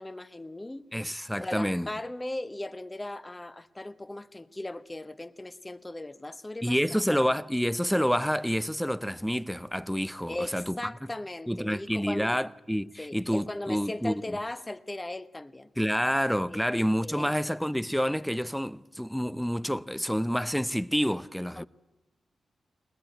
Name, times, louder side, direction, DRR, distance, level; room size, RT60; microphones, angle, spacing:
voice 1, 0.0-0.9 1.4-7.0 10.3-12.4 13.0-15.7 16.5-16.6 17.0-17.6 21.6-21.7, left 1 dB, 20° left, 1.1 m, -38 dB
voice 2, 0.9-1.9 6.6-10.9 11.5-14.4 15.8-21.6, equal, ahead, 0.7 m, -28 dB
22.0 x 20.0 x 9.0 m
supercardioid pair, 40°, 0 cm